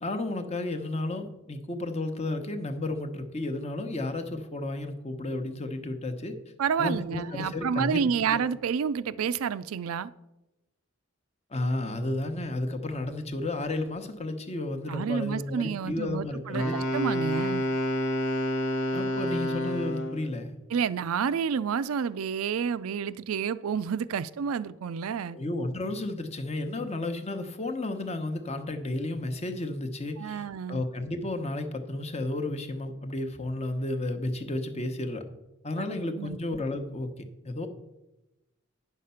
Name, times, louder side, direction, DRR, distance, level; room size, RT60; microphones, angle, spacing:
voice 1, 0.0-6.3 6.8-8.4 11.5-16.8 18.9-20.5 25.3-35.2 35.6-37.1 37.4-37.7, left 2 dB, 30° left, 0.9 m, -32 dB
voice 2, 6.6-10.1 14.9-17.6 20.7-25.4 30.2-30.8 36.2-36.4, right 7 dB, 75° right, 0.4 m, -29 dB
Wind instrument woodwind instrument, 16.5-20.3, equal, 75° left, 1.9 m, -29 dB
9.4 x 6.6 x 5.6 m
head